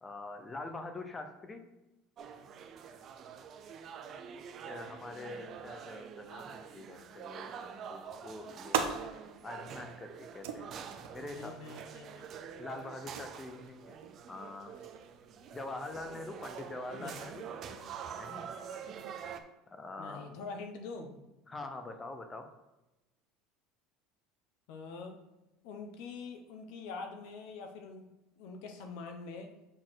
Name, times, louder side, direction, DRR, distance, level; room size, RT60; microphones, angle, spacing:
voice 1, 0.0-1.7 4.7-9.0 9.4-11.6 12.6-13.9 14.3-14.8 15.5-17.4 18.2-18.5 19.7-20.4 21.5-22.5, left 2 dB, 15° left, 7 dB, 0.7 m, -44 dB
sound 1, 2.2-19.4, right 7 dB, 30° right, 0.5 m, -46 dB
sound 2, 8.1-18.4, right 8 dB, 85° right, 0.8 m, -43 dB
voice 2, 11.3-12.2 17.0-17.2 20.0-21.1 24.7-25.2 25.6-28.1 28.4-29.5, left 4 dB, 60° left, 5 dB, 1.0 m, -44 dB
6.3 x 4.1 x 6.3 m, 1.0 s
cardioid pair, 170°, 0 cm